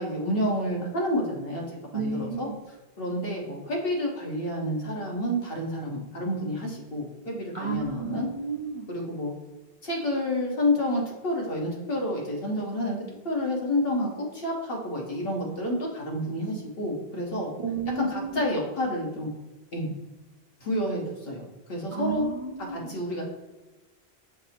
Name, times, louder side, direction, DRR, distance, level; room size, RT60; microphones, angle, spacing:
voice 1, 0.0-1.6 1.9-2.5 3.0-8.3 8.9-9.3 9.8-17.5 18.0-19.3 19.7-20.0 20.6-21.4 21.7-22.3 22.7-23.3, left 1 dB, 65° left, -2 dB, 1.3 m, -29 dB
voice 2, 1.9-2.6 7.5-8.9 17.6-18.4 21.9-22.9, right 4 dB, 40° right, -1 dB, 0.5 m, -32 dB
6.0 x 2.0 x 4.3 m, 1.2 s
omnidirectional pair, 1.1 m